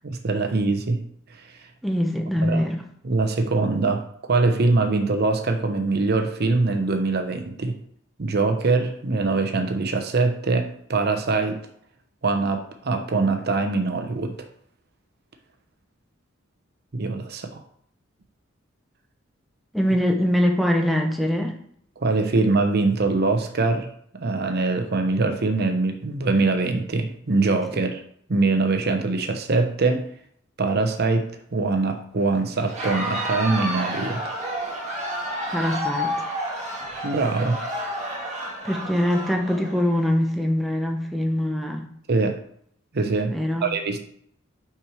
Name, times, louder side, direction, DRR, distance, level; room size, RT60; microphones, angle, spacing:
voice 1, 0.0-1.0 1.3-1.5 2.4-2.6 3.0-7.8 8.2-11.6 12.2-14.5 16.9-17.6 22.0-23.9 24.1-28.0 28.3-30.0 30.6-34.2 37.0-37.6 42.1-42.4 42.9-44.0, right 3 dB, 55° right, 6 dB, 0.8 m, -23 dB
voice 2, 1.8-2.8 19.7-21.6 27.7-27.8 35.5-36.2 38.6-41.8 43.3-43.7, equal, ahead, 1 dB, 0.9 m, -23 dB
Crowd, 32.6-40.1, equal, 35° right, 1.7 m, -30 dB
5.9 x 4.6 x 4.9 m, 0.65 s
head